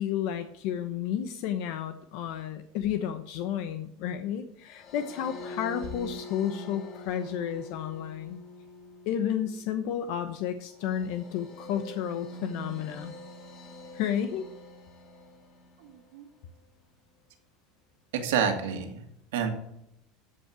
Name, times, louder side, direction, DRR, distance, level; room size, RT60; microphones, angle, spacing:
voice 1, 0.0-8.4 9.1-13.1 13.9-14.5, left 9 dB, 60° left, 9 dB, 0.9 m, -32 dB
sound 1, 4.7-16.0, left 1 dB, 30° left, 2.7 m, -45 dB
voice 2, 15.8-16.3 18.1-19.0 19.3-19.5, right 7 dB, 90° right, 4 dB, 2.5 m, -29 dB
14.0 x 5.7 x 6.0 m, 0.76 s
supercardioid pair, 155°, 0 cm